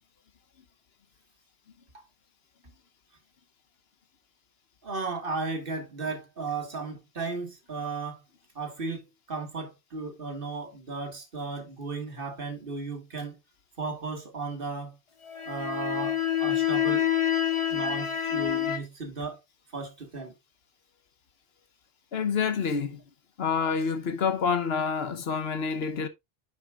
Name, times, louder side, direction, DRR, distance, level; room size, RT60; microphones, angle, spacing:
voice 1, 4.8-8.2 8.6-13.4 13.8-15.0 15.5-17.1 17.7-19.4 19.7-20.3, right 4 dB, 60° right, 2.0 m, -35 dB
sound 1, 15.3-18.8, left 10 dB, 30° left, 0.9 m, -27 dB
voice 2, 22.1-23.0 23.4-26.1, left 6 dB, 70° left, 1.2 m, -27 dB
9.4 x 7.3 x 2.4 m
omnidirectional pair, 1.1 m